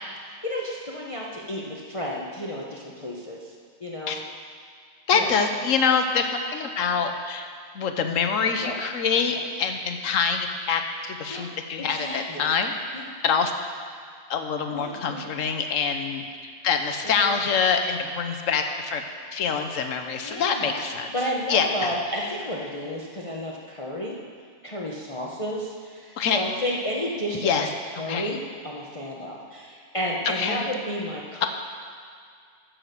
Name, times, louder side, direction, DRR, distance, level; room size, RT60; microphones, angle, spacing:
voice 1, 0.2-3.5 3.8-4.2 5.1-5.4 8.6-8.8 9.3-9.5 11.3-11.5 11.8-12.4 12.9-13.1 14.7-15.3 17.0-17.4 20.2-20.8 21.1-24.2 24.6-27.7 28.0-31.5, equal, 25° left, -3 dB, 0.9 m, -32 dB
voice 2, 5.1-7.5 7.7-12.7 13.2-13.5 14.3-16.2 16.6-19.0 19.3-21.1 21.5-22.3 26.2-26.4 27.4-27.7 28.1-28.3 30.4-30.6 31.4-31.5, left 6 dB, 70° left, 5 dB, 1.2 m, -25 dB
9.8 x 7.7 x 6.7 m, 2.2 s
omnidirectional pair, 1.4 m